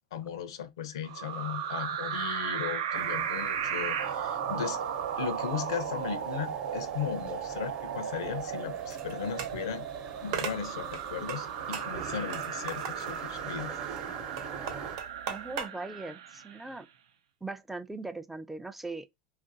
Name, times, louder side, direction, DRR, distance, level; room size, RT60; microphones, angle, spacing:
voice 1, 0.1-4.8 5.2-9.9 10.2-13.8, left 8 dB, 85° left, 0.5 m, -37 dB
sound 1, 1.0-16.7, right 8 dB, 85° right, 0.5 m, -35 dB
sound 2, 2.9-15.0, right 6 dB, 35° right, 0.8 m, -45 dB
sound 3, 8.1-15.7, right 7 dB, 70° right, 0.9 m, -40 dB
voice 2, 15.3-16.9 17.4-19.2, right 3 dB, 5° right, 0.3 m, -40 dB
2.9 x 2.5 x 2.6 m
supercardioid pair, 115°, 3 cm